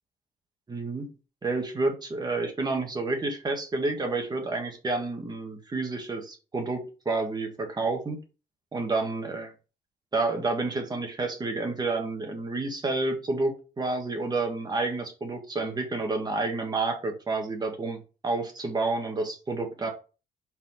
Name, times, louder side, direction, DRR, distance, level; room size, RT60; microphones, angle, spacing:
voice 1, 0.7-1.1 1.4-8.2 8.7-9.4 10.1-19.9, right 3 dB, 25° right, 4 dB, 1.7 m, -29 dB
5.1 x 4.3 x 4.4 m, 0.33 s
cardioid pair, 120°, 16 cm